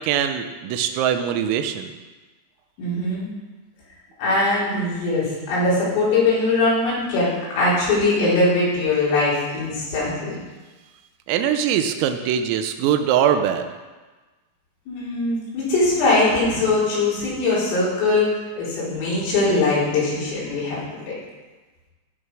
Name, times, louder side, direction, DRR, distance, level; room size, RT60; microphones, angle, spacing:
voice 1, 0.0-1.9 11.3-13.7, right 9 dB, 85° right, 8 dB, 3.5 m, -22 dB
voice 2, 2.8-3.3 4.2-10.3 14.9-18.3 18.6-20.8, left 2 dB, 75° left, -8 dB, 7.0 m, -21 dB
16.0 x 6.5 x 6.2 m, 1.2 s
omnidirectional pair, 6.0 m